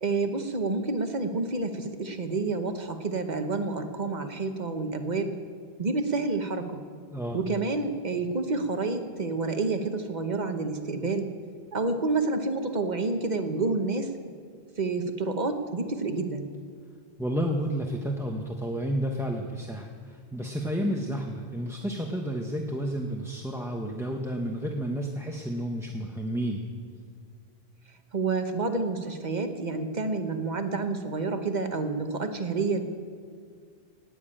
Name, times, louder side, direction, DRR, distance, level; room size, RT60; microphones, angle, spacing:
voice 1, 0.0-5.3 5.8-6.8 7.3-11.3 11.7-14.1 14.8-16.5 28.1-32.8, right 3 dB, 45° right, 6 dB, 1.1 m, -29 dB
voice 2, 7.1-7.4 17.2-26.7, equal, 5° right, 1 dB, 0.8 m, -31 dB
18.5 x 7.2 x 8.8 m, 2.2 s
omnidirectional pair, 1.1 m